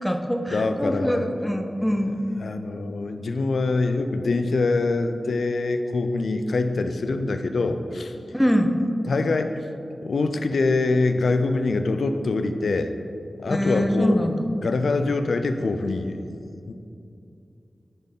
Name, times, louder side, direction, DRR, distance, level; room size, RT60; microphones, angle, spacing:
voice 1, 0.0-2.2 8.3-8.8 13.5-14.4, equal, 5° left, 4 dB, 0.6 m, -23 dB
voice 2, 0.5-1.3 2.4-8.2 9.0-9.6 10.0-12.9 13.4-14.3 14.6-16.4 16.7-16.8, left 3 dB, 85° left, 8 dB, 0.4 m, -24 dB
10.5 x 4.1 x 3.6 m, 2.6 s
wide cardioid pair, 90°, 0 cm